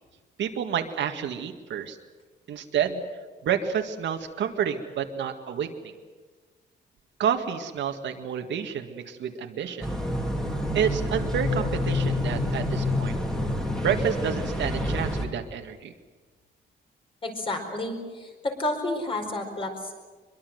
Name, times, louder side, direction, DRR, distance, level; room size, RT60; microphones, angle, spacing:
voice 1, 0.4-2.0 2.5-3.0 3.4-5.9 7.2-9.9 10.7-13.1 13.8-15.9, right 8 dB, 70° right, 4 dB, 2.0 m, -29 dB
sound 1, 9.8-15.3, left 1 dB, 5° left, 2.8 m, -27 dB
voice 2, 17.2-20.1, left 2 dB, 30° left, 3 dB, 4.8 m, -31 dB
24.5 x 23.0 x 7.9 m, 1.4 s
wide cardioid pair, 175°, 19 cm